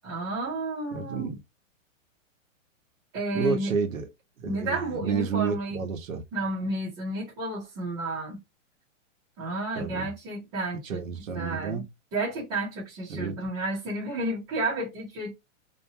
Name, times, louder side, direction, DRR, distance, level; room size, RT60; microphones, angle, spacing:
voice 1, 0.0-1.3 3.1-3.7 4.4-5.8 6.3-8.4 9.4-11.0 11.3-11.8 12.1-15.3, right 2 dB, 15° right, 0.7 m, -31 dB
voice 2, 0.9-1.3 3.3-4.1 4.4-6.2 9.7-10.1 10.8-11.8 13.1-13.4, right 5 dB, 80° right, 1.1 m, -30 dB
2.8 x 2.2 x 2.7 m
hypercardioid pair, 170°, 40 cm